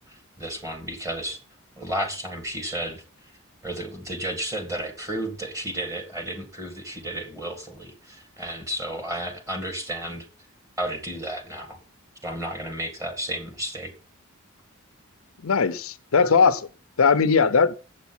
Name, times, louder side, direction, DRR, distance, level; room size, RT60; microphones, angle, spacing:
voice 1, 0.1-1.4 1.8-3.0 3.6-10.3 10.8-11.8 12.2-13.9, right 1 dB, 15° right, 2.0 m, -32 dB
voice 2, 15.4-16.7 17.0-17.7, left 5 dB, 70° left, 0.6 m, -19 dB
8.2 x 7.8 x 6.0 m
head